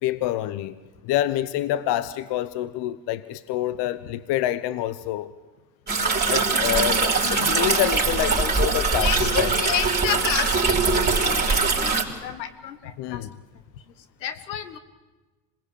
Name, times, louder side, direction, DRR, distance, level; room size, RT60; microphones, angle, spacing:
voice 1, 0.0-0.8 1.0-5.3 6.3-9.5 13.0-13.3, left 13 dB, 55° left, 1.0 m, -27 dB
sound 1, 5.9-12.0, right 4 dB, 20° right, 4.9 m, -22 dB
voice 2, 6.6-6.9 9.0-10.8 11.0-13.2 14.2-14.8, left 9 dB, 85° left, 1.7 m, -31 dB
26.5 x 19.5 x 8.6 m
hypercardioid pair, 65°, 49 cm